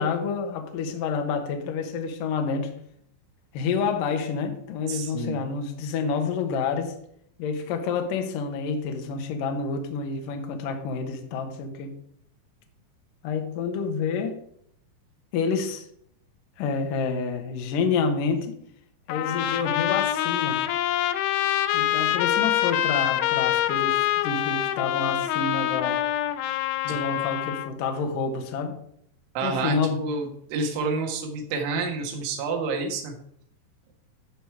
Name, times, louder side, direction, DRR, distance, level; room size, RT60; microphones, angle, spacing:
voice 1, 0.0-2.7 3.5-6.9 7.4-12.0 13.2-14.4 15.3-15.8 16.6-18.6 19.1-20.6 21.7-26.0 26.8-28.8 29.4-30.0, left 5 dB, 65° left, 5 dB, 2.3 m, -28 dB
voice 2, 4.9-5.4 26.9-27.0 29.4-33.1, right 4 dB, 80° right, 2 dB, 4.0 m, -29 dB
Trumpet, 19.1-27.7, left 12 dB, 90° left, 2.3 m, -25 dB
14.0 x 5.0 x 4.8 m, 0.69 s
omnidirectional pair, 5.4 m